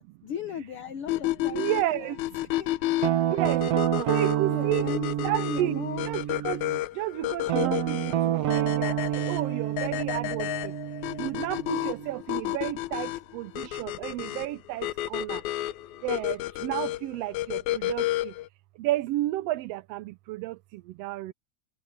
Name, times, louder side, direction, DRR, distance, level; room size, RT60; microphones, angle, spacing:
voice 1, 0.0-2.1 2.6-2.9 4.4-6.2, left 8 dB, 55° left, 1.9 m, -38 dB
sound 1, 1.1-18.5, left 16 dB, 80° left, 2.0 m, -31 dB
voice 2, 1.4-2.2 3.3-3.7 4.1-4.9 5.2-5.8 6.0-6.6 6.9-10.7 11.2-15.4 16.0-18.3 18.8-21.3, right 16 dB, 80° right, 1.4 m, -32 dB
Guitar, 3.0-6.8 7.5-12.2, right 12 dB, 65° right, 1.9 m, -28 dB
omnidirectional pair, 3.4 m